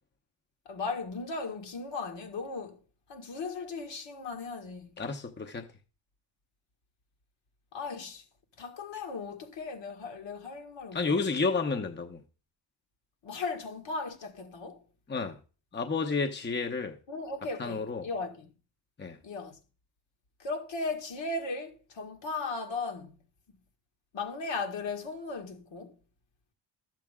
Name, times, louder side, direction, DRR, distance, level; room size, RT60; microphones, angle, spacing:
voice 1, 0.7-2.8 3.1-4.9 7.7-8.2 8.6-11.3 13.2-14.8 17.1-18.5 19.2-19.6 20.4-23.1 23.5-23.6 24.1-26.0, left 3 dB, 60° left, 2.0 m, -37 dB
voice 2, 5.0-5.7 10.9-12.2 15.1-15.4 15.7-17.0 17.6-18.1 19.0-19.2, left 4 dB, 20° left, 1.0 m, -31 dB
11.5 x 7.6 x 3.6 m
cardioid pair, 75°, 49 cm